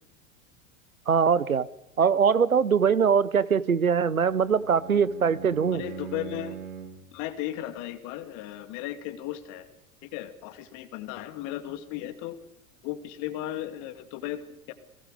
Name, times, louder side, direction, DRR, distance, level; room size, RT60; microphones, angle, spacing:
voice 1, 1.1-1.7 2.0-5.8, right 6 dB, 85° right, 18 dB, 1.0 m, -22 dB
Bowed string instrument, 4.0-7.1, right 7 dB, 70° right, 3.8 m, -41 dB
voice 2, 5.7-6.6 7.1-9.7 10.0-12.4 12.8-14.7, left 13 dB, 45° left, 10 dB, 2.3 m, -36 dB
30.0 x 20.5 x 5.2 m, 0.81 s
figure-of-eight pair, 85°, 41 cm